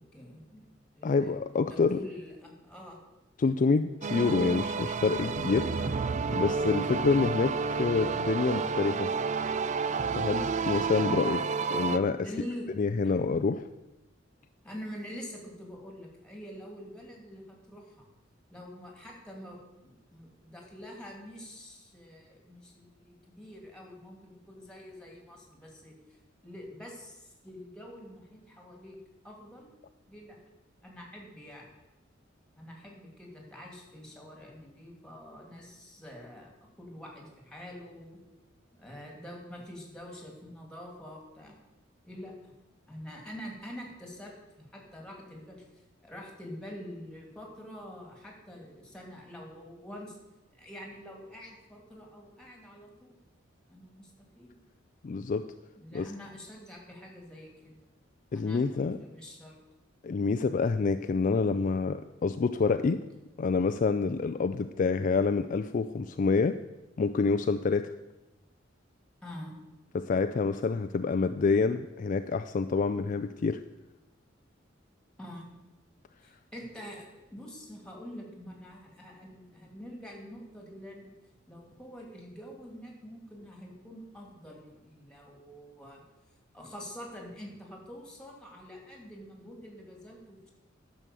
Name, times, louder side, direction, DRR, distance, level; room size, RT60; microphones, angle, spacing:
voice 1, 0.1-0.7 0.9-1.3 1.6-3.0 5.7-5.9 12.2-12.7 14.6-18.1 18.5-25.9 26.4-29.0 29.2-29.7 30.1-30.4 30.8-31.7 32.5-38.2 38.7-41.6 42.1-42.5 42.9-50.2 50.5-53.1 53.7-54.5 55.8-57.8 58.3-58.7 59.0-59.6 69.2-69.6 75.2-75.5 76.2-81.1 81.5-86.0 86.5-90.5, equal, 5° left, 0 dB, 2.4 m, -46 dB
voice 2, 1.0-2.0 3.4-5.7 6.3-9.1 10.2-11.4 11.7-12.3 12.8-13.7 55.0-55.5 55.9-56.1 58.3-59.0 60.0-63.0 63.4-66.6 67.0-67.9 69.9-73.6, left 4 dB, 40° left, 9 dB, 0.4 m, -27 dB
sound 1, 4.0-12.0, right 5 dB, 35° right, 0.4 m, -30 dB
11.0 x 6.3 x 6.8 m, 1.0 s
head